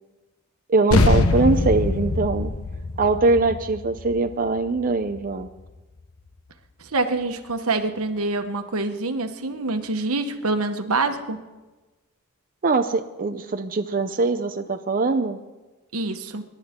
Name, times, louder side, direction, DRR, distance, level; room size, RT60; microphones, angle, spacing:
voice 1, 0.7-2.5 3.0-5.5 12.6-15.4, right 3 dB, 40° right, 6 dB, 0.6 m, -22 dB
sound 1, 0.9-5.7, left 2 dB, 80° left, 1.0 m, -23 dB
voice 2, 6.8-11.4 15.9-16.4, right 3 dB, 85° right, 7 dB, 1.3 m, -26 dB
26.5 x 11.5 x 3.7 m, 1.2 s
head